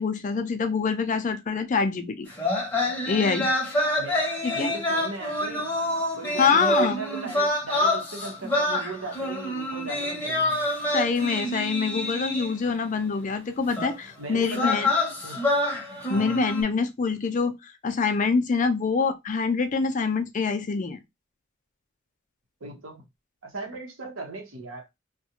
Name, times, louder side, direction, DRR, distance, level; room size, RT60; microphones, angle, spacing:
voice 1, 0.0-2.3 3.1-3.5 4.4-4.7 6.4-7.0 10.9-14.9 16.1-21.0, left 5 dB, 40° left, 0.4 m, -25 dB
sound 1, 2.3-12.7 13.7-13.9 14.4-16.6, left 1 dB, 10° left, 0.9 m, -27 dB
voice 2, 4.5-5.7 6.2-10.6 14.2-14.8 15.2-15.4 16.1-16.4 22.6-23.0 23.4-24.8, right 3 dB, 85° right, 0.9 m, -37 dB
2.4 x 2.2 x 2.8 m
head